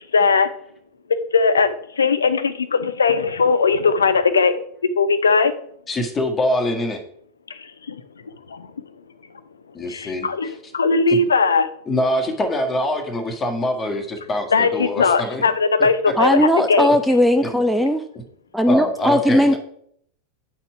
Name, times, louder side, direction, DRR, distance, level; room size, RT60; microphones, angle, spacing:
voice 1, 0.1-0.5 1.3-4.5 4.8-5.5 7.5-8.0 8.5-8.7 9.9-11.7 14.5-16.9, left 4 dB, 75° left, 13 dB, 0.6 m, -19 dB
voice 2, 5.9-7.0 9.7-10.3 11.1-11.2 11.9-15.4 15.8-15.9 17.4-17.5 18.7-19.6, left 1 dB, 20° left, 5 dB, 1.5 m, -24 dB
voice 3, 16.2-18.0 18.5-19.6, equal, ahead, 10 dB, 0.6 m, -17 dB
8.8 x 4.4 x 4.6 m, 0.67 s
figure-of-eight pair, 85°, 0 cm